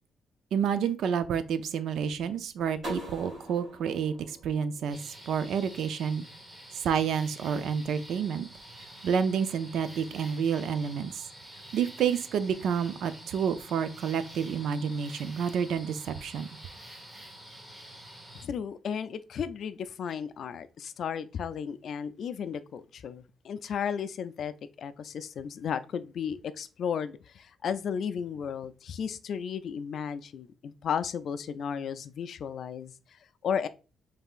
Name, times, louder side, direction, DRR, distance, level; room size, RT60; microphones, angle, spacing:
voice 1, 0.5-6.2 6.7-8.5 9.0-11.2 11.7-16.5, right 7 dB, 75° right, 0.4 m, -29 dB
sound 1, 2.8-5.6, equal, 50° right, 2.5 m, -42 dB
sound 2, 4.9-18.4, right 1 dB, 15° right, 1.0 m, -48 dB
voice 2, 18.4-24.5 24.8-33.7, left 7 dB, 55° left, 0.3 m, -34 dB
5.5 x 3.3 x 2.4 m
cardioid pair, 160°, 0 cm